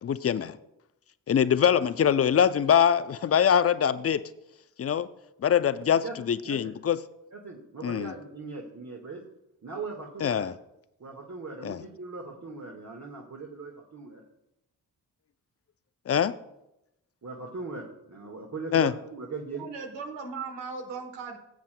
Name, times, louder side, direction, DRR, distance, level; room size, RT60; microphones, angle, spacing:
voice 1, 0.0-0.6 1.3-4.2 4.8-5.1 5.4-7.0 7.8-8.1 10.2-10.5 11.6-11.8 16.1-16.3 18.7-18.9, left 8 dB, 35° left, 0.5 m, -23 dB
voice 2, 5.9-6.7 7.3-9.2 9.6-10.5 11.0-14.2 17.2-19.7, right 3 dB, 40° right, 1.7 m, -39 dB
voice 3, 19.6-21.4, right 5 dB, 90° right, 1.3 m, -37 dB
15.0 x 7.3 x 2.2 m
supercardioid pair, 40°, 42 cm